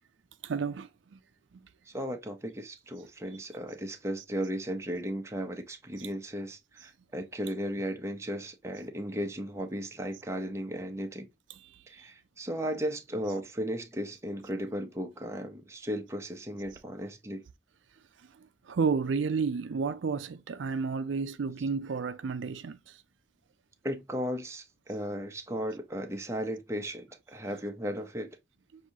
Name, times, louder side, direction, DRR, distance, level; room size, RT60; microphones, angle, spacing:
voice 1, 0.4-1.2 18.7-22.8, right 5 dB, 85° right, 0.4 m, -31 dB
voice 2, 1.9-11.3 11.9-17.4 23.8-28.4, equal, 15° right, 0.6 m, -35 dB
6.1 x 2.7 x 2.7 m
head